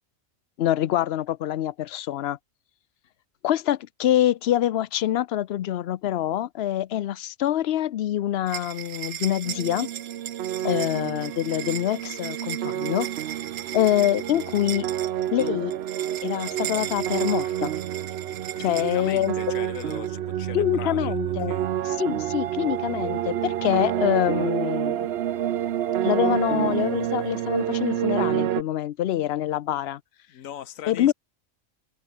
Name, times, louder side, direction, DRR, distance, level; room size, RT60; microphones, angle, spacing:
voice 1, 0.6-2.4 3.4-9.9 10.6-13.1 13.7-14.9 15.3-15.7 16.2-17.7 18.6-19.3 20.5-21.5 21.8-25.1 26.0-30.0 30.9-31.1, left 12 dB, 60° left, 0.7 m, -25 dB
sound 1, 8.5-20.1, right 11 dB, 80° right, 1.1 m, -37 dB
sound 2, 9.4-28.6, right 11 dB, 60° right, 0.8 m, -28 dB
voice 2, 18.6-21.7 30.3-31.1, left 10 dB, 85° left, 1.3 m, -39 dB
omnidirectional pair, 1.4 m